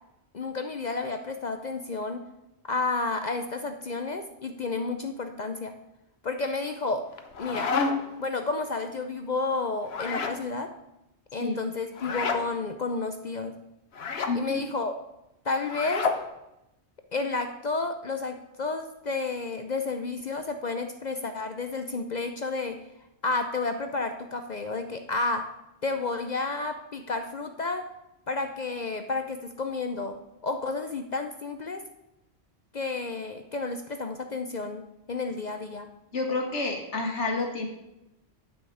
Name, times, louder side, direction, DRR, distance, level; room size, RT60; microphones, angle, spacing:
voice 1, 0.3-2.2 2.6-5.7 6.2-7.0 7.4-7.7 8.2-10.7 11.3-13.5 14.3-14.9 15.4-16.1 17.1-22.8 23.2-25.5 25.8-27.9 28.3-30.2 30.4-31.8 32.7-35.9, left 3 dB, 45° left, 7 dB, 0.7 m, -31 dB
sound 1, 7.1-8.2 9.8-10.4 11.9-12.4 13.9-14.4 15.6-16.2, left 4 dB, 65° left, 1.2 m, -29 dB
voice 2, 14.3-14.6 36.1-37.7, left 3 dB, 80° left, 2 dB, 2.1 m, -29 dB
9.2 x 6.3 x 7.8 m, 0.89 s
omnidirectional pair, 1.2 m